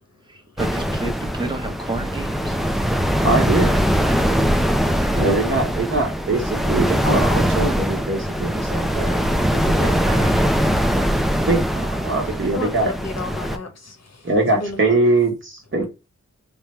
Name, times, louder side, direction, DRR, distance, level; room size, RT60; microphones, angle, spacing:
voice 1, 0.3-2.6 4.8-5.4, right 3 dB, 15° right, 0.8 m, -31 dB
sound 1, 0.6-13.6, equal, ahead, 0.3 m, -21 dB
voice 2, 3.2-3.7 5.2-9.2 9.6-10.3 11.5-12.9 14.2-15.9, right 2 dB, 45° right, 1.0 m, -22 dB
voice 3, 12.2-15.0, left 3 dB, 65° left, 1.1 m, -33 dB
3.5 x 2.2 x 4.2 m
wide cardioid pair, 110°, 29 cm